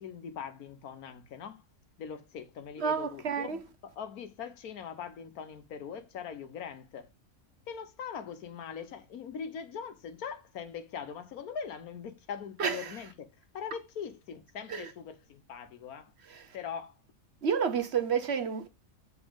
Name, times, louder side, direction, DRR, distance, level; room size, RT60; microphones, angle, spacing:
voice 1, 0.0-1.6 2.0-7.1 7.7-13.3 13.5-16.1 16.5-17.0, left 7 dB, 90° left, 1.5 m, -41 dB
voice 2, 2.8-3.6 12.6-12.9 14.7-14.9 16.3-16.6 17.4-18.7, right 6 dB, 50° right, 1.0 m, -30 dB
7.3 x 4.4 x 5.1 m
omnidirectional pair, 1.5 m